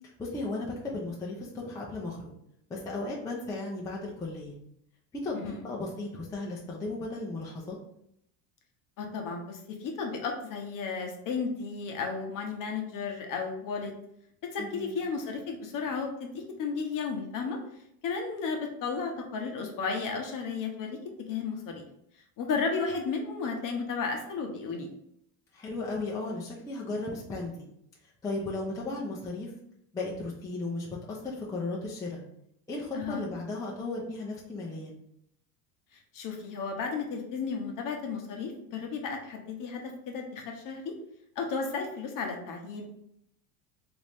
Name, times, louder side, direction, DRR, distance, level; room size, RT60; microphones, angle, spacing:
voice 1, 0.2-2.2 2.7-4.5 5.2-7.8 14.6-15.0 25.5-27.5 28.2-29.5 29.9-32.2 32.7-34.9, left 2 dB, 10° left, -4 dB, 0.4 m, -35 dB
voice 2, 9.0-13.9 14.5-17.6 18.0-21.0 21.3-21.8 22.4-24.9 32.9-33.2 36.1-40.9 41.4-42.8, left 5 dB, 45° left, 3 dB, 0.8 m, -33 dB
3.0 x 2.7 x 3.3 m, 0.76 s
supercardioid pair, 110°, 47 cm